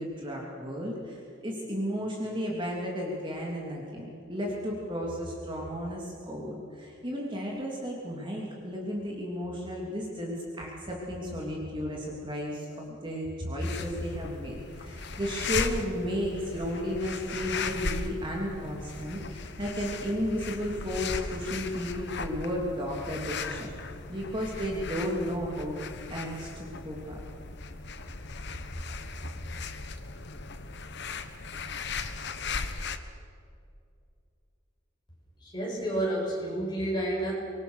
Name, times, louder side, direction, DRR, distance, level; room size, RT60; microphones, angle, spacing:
voice 1, 0.0-23.7 24.1-25.8 26.1-27.2, equal, 25° right, -2 dB, 3.2 m, -33 dB
sound 1, 13.6-33.0, left 4 dB, 55° left, 1.3 m, -37 dB
voice 2, 35.4-37.3, right 1 dB, 20° left, -4 dB, 7.9 m, -30 dB
26.0 x 22.5 x 6.5 m, 2.5 s
head